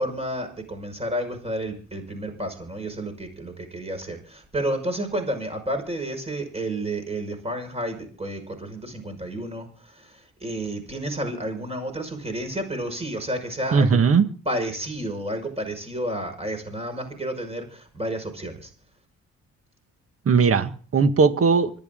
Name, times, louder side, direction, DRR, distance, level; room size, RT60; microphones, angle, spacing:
voice 1, 0.0-14.0 14.5-18.7, right 1 dB, 20° right, 5.6 m, -31 dB
voice 2, 13.7-14.3 20.3-21.7, right 5 dB, 50° right, 1.8 m, -18 dB
25.5 x 9.6 x 3.8 m
cardioid pair, 90°, 30 cm